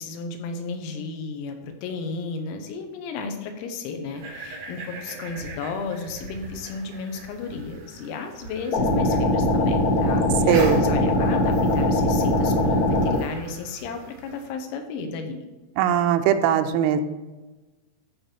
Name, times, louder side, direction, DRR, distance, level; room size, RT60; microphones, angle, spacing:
voice 1, 0.0-15.4, left 4 dB, 90° left, 5 dB, 3.8 m, -33 dB
sound 1, 4.1-14.5, right 2 dB, 70° right, 1.6 m, -40 dB
sound 2, 8.7-13.2, left 1 dB, 70° left, 1.7 m, -21 dB
voice 2, 10.5-10.9 15.8-17.0, right 9 dB, 85° right, 8 dB, 3.3 m, -20 dB
14.0 x 5.0 x 4.5 m, 1.2 s
omnidirectional pair, 6.0 m